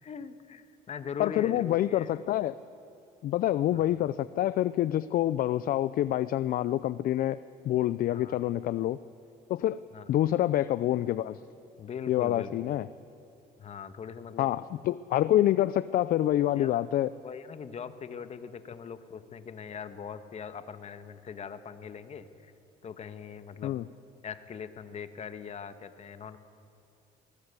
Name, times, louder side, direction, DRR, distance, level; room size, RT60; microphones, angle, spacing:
voice 1, 0.0-2.1 3.7-3.8 8.1-8.4 9.9-10.0 11.8-12.7 13.6-14.5 16.6-16.8 17.2-22.5 22.8-23.8 24.2-26.4, left 6 dB, 40° left, 11 dB, 1.3 m, -41 dB
voice 2, 1.2-2.6 3.2-7.4 7.6-9.0 9.5-9.8 10.1-11.4 12.1-12.9 14.4-17.1 23.6-23.9, left 13 dB, 60° left, 16 dB, 0.5 m, -27 dB
21.5 x 19.0 x 8.2 m, 2.6 s
cardioid pair, 110°, 17 cm